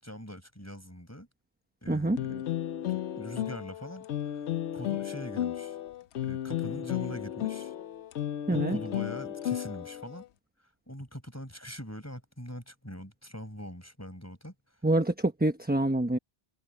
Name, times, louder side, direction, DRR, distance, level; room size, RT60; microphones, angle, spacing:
voice 1, 0.0-1.3 1.8-2.4 2.9-4.4 4.7-5.8 6.2-7.7 8.5-10.3 10.9-14.5, equal, 15° left, 6.9 m, -43 dB
sound 1, 2.2-10.3, left 11 dB, 85° left, 1.0 m, -34 dB
voice 2, 8.5-8.8 14.8-16.2, right 1 dB, 10° right, 1.0 m, -26 dB
omnidirectional pair, 1.1 m